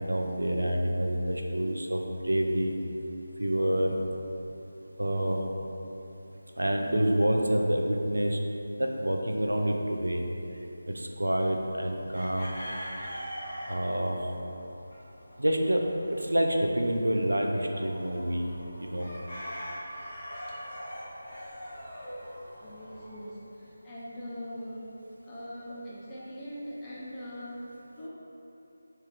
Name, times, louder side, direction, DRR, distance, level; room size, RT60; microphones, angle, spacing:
voice 1, 0.0-2.7 3.4-3.9 5.0-5.4 6.6-8.4 8.8-10.2 10.9-12.6 13.7-14.2 15.4-15.8 16.1-18.4 18.8-19.1, right 1 dB, 85° right, 1 dB, 0.4 m, -27 dB
sound 1, 12.1-23.3, equal, 40° left, 1.3 m, -43 dB
voice 2, 22.6-24.8 25.2-28.1, equal, 15° left, -8 dB, 0.6 m, -41 dB
3.5 x 2.8 x 3.5 m, 2.9 s
figure-of-eight pair, 160°, 0 cm